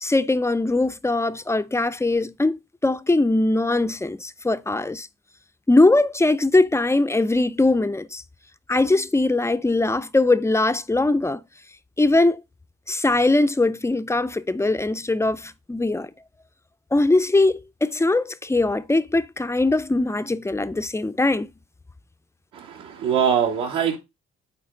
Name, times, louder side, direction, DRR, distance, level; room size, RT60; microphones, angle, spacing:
voice 1, 0.0-5.1 5.7-8.2 8.7-11.4 12.0-12.4 12.9-16.1 16.9-21.5, left 2 dB, 10° left, 0.4 m, -21 dB
voice 2, 22.5-24.0, right 8 dB, 85° right, 2.8 m, -23 dB
8.8 x 4.0 x 3.6 m
cardioid pair, 90°, 30 cm